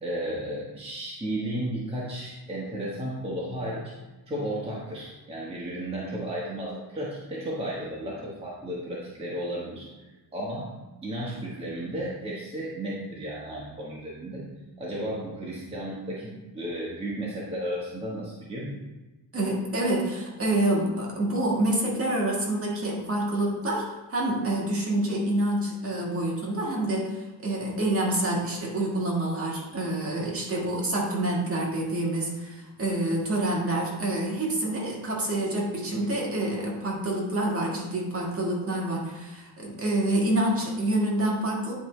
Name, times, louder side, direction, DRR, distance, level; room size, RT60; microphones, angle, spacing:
voice 1, 0.0-3.9 4.3-10.7 11.0-14.5 14.8-18.7, right 1 dB, 15° right, -5 dB, 1.2 m, -34 dB
voice 2, 19.3-41.7, right 1 dB, 35° right, -3 dB, 1.6 m, -27 dB
9.4 x 4.4 x 3.2 m, 1.1 s
cardioid pair, 150°, 42 cm